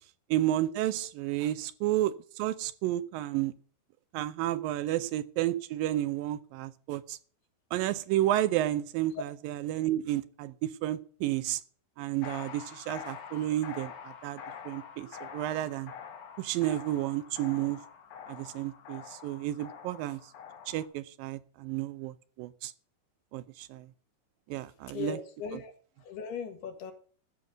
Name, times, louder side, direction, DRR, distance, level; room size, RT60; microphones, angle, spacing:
voice 1, 0.3-3.5 4.1-7.2 7.7-11.6 12.0-15.9 16.4-17.8 18.3-20.2 20.7-22.7 23.3-23.9 24.5-25.2, right 14 dB, 75° right, 13 dB, 2.3 m, -31 dB
sound 1, 12.2-20.9, left 7 dB, 60° left, 2.7 m, -46 dB
voice 2, 24.9-25.7 26.0-26.9, left 6 dB, 85° left, 5 dB, 3.8 m, -38 dB
14.0 x 5.5 x 9.0 m, 0.43 s
omnidirectional pair, 4.5 m